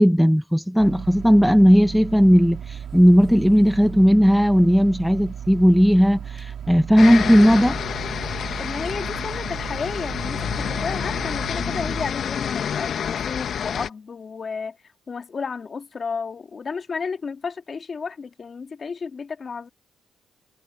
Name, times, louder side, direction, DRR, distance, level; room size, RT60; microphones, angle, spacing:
voice 1, 0.0-7.8, equal, ahead, 0.9 m, -16 dB
sound 1, 0.8-12.1, right 8 dB, 65° right, 2.7 m, -35 dB
sound 2, 7.0-13.9, left 8 dB, 60° left, 1.2 m, -28 dB
voice 2, 8.6-14.8 15.1-19.7, left 5 dB, 40° left, 2.3 m, -32 dB
cardioid pair, 90°, 0 cm